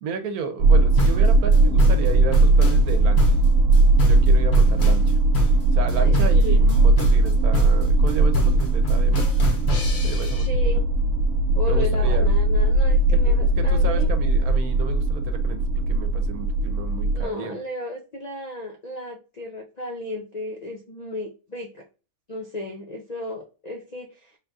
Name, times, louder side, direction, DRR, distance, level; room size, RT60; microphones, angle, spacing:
voice 1, 0.0-3.3 4.0-5.1 5.7-9.3 10.0-10.5 11.7-12.3 13.3-17.6, right 5 dB, 85° right, 1.2 m, -32 dB
sound 1, 0.6-17.2, right 2 dB, 65° right, 0.6 m, -18 dB
sound 2, 1.0-10.5, left 1 dB, 50° left, 1.2 m, -30 dB
voice 2, 5.9-6.6 10.4-10.9 11.5-14.1 17.1-21.8 22.3-24.4, left 1 dB, 65° left, 0.4 m, -34 dB
3.8 x 2.3 x 3.9 m
omnidirectional pair, 1.5 m